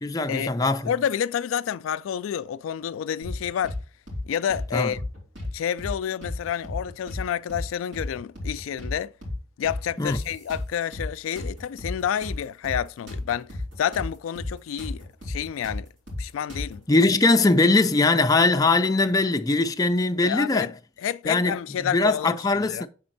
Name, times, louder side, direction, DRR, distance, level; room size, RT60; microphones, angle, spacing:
voice 1, 0.0-0.9 4.7-4.9 10.0-10.2 16.9-20.7 21.3-21.6 21.9-22.9, left 3 dB, 20° left, 0.4 m, -21 dB
voice 2, 0.8-3.8 4.2-5.0 5.5-9.1 9.6-13.5 13.8-15.9 16.2-16.8 20.2-20.7 21.0-22.9, left 9 dB, 90° left, 0.3 m, -29 dB
sound 1, 3.2-3.8 4.1-4.2 4.5-5.5 5.8-5.9 6.2-7.2 7.5-7.7 7.9-8.9 9.2-9.4 9.6-11.1 11.4-14.1 14.4-14.5 14.8-16.8, left 1 dB, 70° right, 3.7 m, -33 dB
7.2 x 4.3 x 4.0 m
head